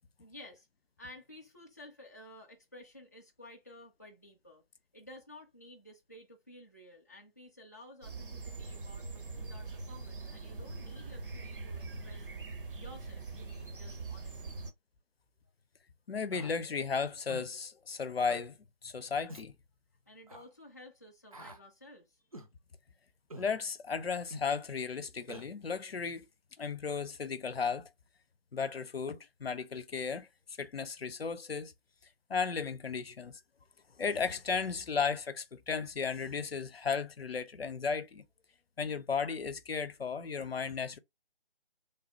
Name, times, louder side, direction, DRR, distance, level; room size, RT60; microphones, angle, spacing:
voice 1, 0.2-0.7 1.0-4.6 4.9-9.1 9.3-12.3 12.8-14.6 20.1-22.2, left 1 dB, 20° left, 0.4 m, -53 dB
sound 1, 8.0-14.7, right 3 dB, 60° right, 0.8 m, -43 dB
voice 2, 16.1-18.6 18.8-19.6 23.4-26.3 26.6-27.9 28.5-30.3 30.6-31.7 32.3-33.4 34.0-38.2 38.8-41.0, left 5 dB, 85° left, 0.6 m, -35 dB
Human voice, 16.3-16.5 17.3-17.5 18.3-18.5 19.3-19.5 20.3-20.4 21.3-21.6 22.3-22.5 23.3-23.5 24.3-24.5 25.3-25.5, equal, 40° right, 0.4 m, -46 dB
3.2 x 2.0 x 2.8 m
figure-of-eight pair, 150°, 29 cm